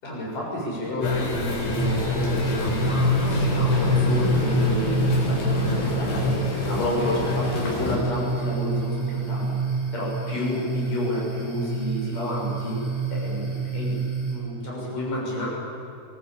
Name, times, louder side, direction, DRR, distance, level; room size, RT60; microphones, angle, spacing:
voice 1, 0.0-6.3 6.7-9.6 9.9-12.8 13.1-14.0 14.3-15.5, left 1 dB, 45° left, -4 dB, 8.5 m, -30 dB
sound 1, 1.0-8.0, left 3 dB, 85° left, 6.9 m, -25 dB
sound 2, 1.7-14.3, right 3 dB, 30° left, 7.2 m, -29 dB
24.5 x 19.0 x 8.9 m, 2.7 s
omnidirectional pair, 5.1 m